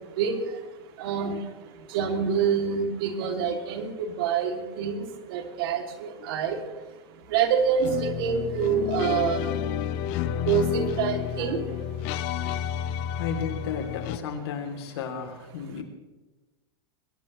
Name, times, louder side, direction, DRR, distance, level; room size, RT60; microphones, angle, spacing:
voice 1, 1.0-1.4 1.9-5.0 5.3-6.6 7.3-9.5 10.5-11.6, right 7 dB, 65° right, 4 dB, 2.7 m, -26 dB
sound 1, 7.8-14.2, left 10 dB, 50° left, 0.9 m, -30 dB
voice 2, 13.1-15.8, left 6 dB, 75° left, 4 dB, 3.1 m, -34 dB
22.0 x 17.5 x 3.2 m, 1.1 s
supercardioid pair, 125°, 14 cm